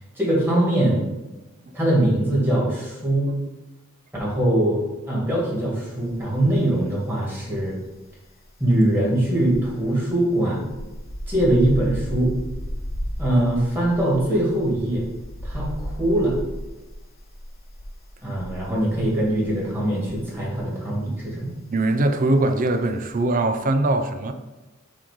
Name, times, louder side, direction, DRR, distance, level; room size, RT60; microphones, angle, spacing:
voice 1, 0.2-1.0 1.7-3.3 4.2-7.8 8.6-10.6 11.3-12.3 13.2-15.1 15.4-16.3 18.2-21.5, right 1 dB, 10° right, -4 dB, 2.1 m, -22 dB
sound 1, 6.0-6.9 7.1-20.7 20.9-21.2, equal, 45° left, 0.9 m, -34 dB
voice 2, 21.7-24.3, right 2 dB, 40° right, 8 dB, 0.5 m, -21 dB
7.5 x 3.1 x 5.1 m, 1.1 s
head